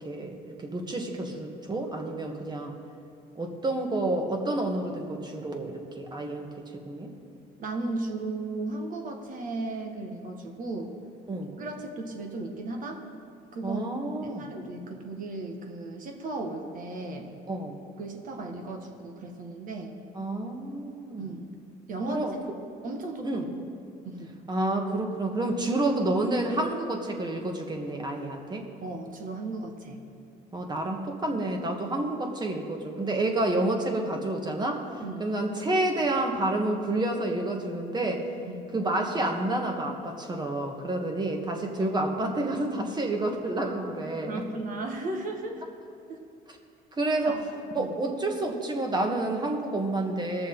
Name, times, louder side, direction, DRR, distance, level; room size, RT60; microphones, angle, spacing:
voice 1, 0.0-2.8 3.4-7.1 11.3-11.6 13.6-14.5 17.5-17.8 20.1-21.2 22.1-22.3 23.2-23.5 24.5-28.7 30.5-34.8 35.2-38.3 38.7-44.3 46.5-46.6 46.9-47.4 47.7-50.5, right 2 dB, 25° right, 2 dB, 1.6 m, -29 dB
voice 2, 7.6-10.9 11.6-13.0 13.5-13.9 14.2-17.3 18.0-20.0 21.2-21.5 21.9-22.3 22.8-23.5 24.0-24.3 28.8-30.0 35.0-35.3 38.5-38.6 41.0-41.4 43.6-45.8 46.1-46.2 47.1-47.4 47.8-47.9, right 2 dB, 55° right, 2 dB, 1.7 m, -36 dB
20.0 x 6.8 x 4.0 m, 2.4 s
cardioid pair, 110°, 17 cm